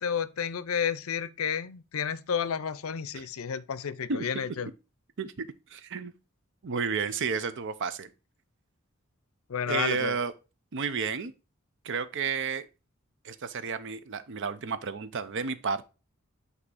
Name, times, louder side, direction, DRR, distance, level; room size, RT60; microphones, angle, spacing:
voice 1, 0.0-4.7 9.5-10.2, left 7 dB, 75° left, 0.5 m, -31 dB
voice 2, 5.2-6.1 6.6-8.1 9.7-10.3 10.7-11.3 11.8-12.7 13.2-15.9, right 5 dB, 60° right, 0.6 m, -32 dB
8.4 x 2.8 x 4.8 m
head